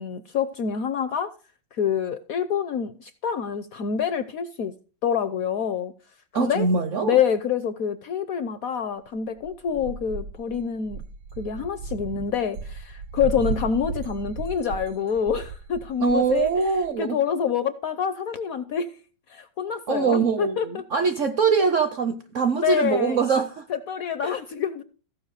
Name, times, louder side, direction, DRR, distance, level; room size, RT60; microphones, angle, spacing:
voice 1, 0.0-1.3 1.7-4.7 5.0-5.9 6.4-6.7 7.0-11.0 11.4-16.5 17.0-18.9 19.3-20.8 22.6-23.2 23.7-24.8, left 7 dB, 65° left, 0.9 m, -26 dB
voice 2, 6.3-7.2 16.0-17.2 19.9-23.6 24.2-24.4, right 5 dB, 60° right, 0.8 m, -23 dB
sound 1, 9.4-16.9, right 4 dB, 80° right, 1.9 m, -35 dB
15.0 x 5.3 x 6.4 m
omnidirectional pair, 2.1 m